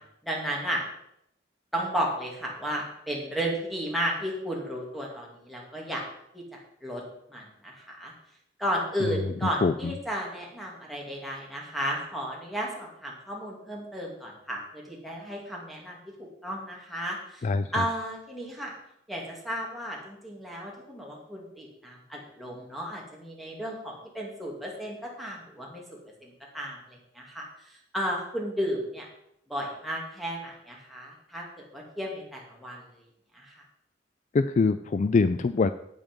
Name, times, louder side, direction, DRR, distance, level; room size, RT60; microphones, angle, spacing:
voice 1, 0.2-0.8 1.7-6.0 6.3-7.0 7.3-8.1 8.6-17.5 17.7-18.7 19.1-29.1 29.5-33.0 33.3-33.6, equal, ahead, -2 dB, 2.5 m, -34 dB
voice 2, 9.6-9.9 17.4-17.9 34.3-35.7, left 4 dB, 40° left, 12 dB, 0.3 m, -24 dB
9.1 x 8.7 x 5.3 m, 0.78 s
head